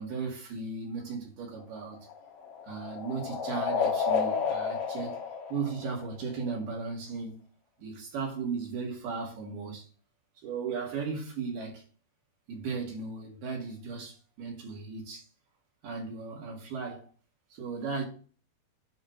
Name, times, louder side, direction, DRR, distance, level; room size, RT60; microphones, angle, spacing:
voice 1, 0.0-2.0 2.6-5.2 5.5-7.4 7.8-9.9 10.4-11.8 12.5-15.2 15.8-17.1 17.5-18.0, right 5 dB, 75° right, 3.9 m, -36 dB
sound 1, 1.6-6.4, left 6 dB, 65° left, 1.5 m, -31 dB
8.6 x 3.2 x 6.4 m
omnidirectional pair, 4.6 m